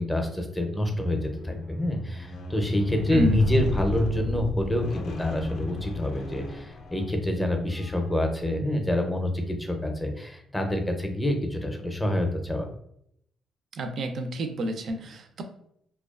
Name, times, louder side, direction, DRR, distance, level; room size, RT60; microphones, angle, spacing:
voice 1, 0.0-12.7, left 1 dB, 10° left, 4 dB, 0.5 m, -27 dB
Squeak, 1.0-7.3 8.1-8.2, left 3 dB, 70° left, 0.3 m, -33 dB
voice 2, 3.1-3.4 13.8-15.4, right 1 dB, 60° right, 6 dB, 0.4 m, -29 dB
2.3 x 2.2 x 2.3 m, 0.72 s
cardioid pair, 90°, 0 cm